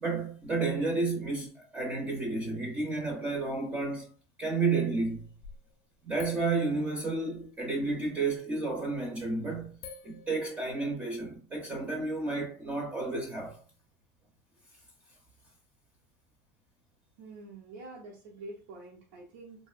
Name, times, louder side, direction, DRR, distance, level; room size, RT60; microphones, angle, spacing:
voice 1, 0.0-4.1 4.4-5.3 6.1-9.8 10.0-13.6, right 3 dB, 15° right, 0.5 m, -31 dB
sound 1, 5.0-5.7 6.2-7.9 9.0-9.2 9.8-11.1, left 6 dB, 65° left, 0.5 m, -50 dB
voice 2, 17.2-19.7, right 2 dB, 85° right, 0.7 m, -46 dB
3.0 x 2.6 x 2.3 m
cardioid pair, 175°, 8 cm